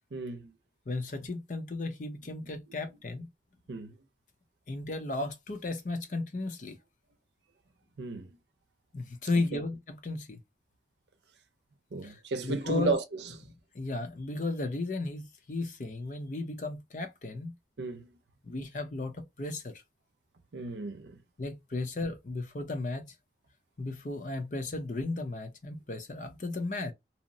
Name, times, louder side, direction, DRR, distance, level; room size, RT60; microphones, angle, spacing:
voice 1, 0.1-0.5 3.7-4.0 8.0-8.3 9.3-9.4 11.9-13.3 17.8-18.1 20.5-21.2, right 3 dB, 75° right, 0.6 m, -34 dB
voice 2, 0.9-3.3 4.7-6.8 8.9-10.4 12.0-12.1 12.4-12.9 13.7-17.5 18.4-19.7 21.4-23.1 23.8-26.9, left 2 dB, 45° left, 0.6 m, -34 dB
2.8 x 2.0 x 2.6 m
head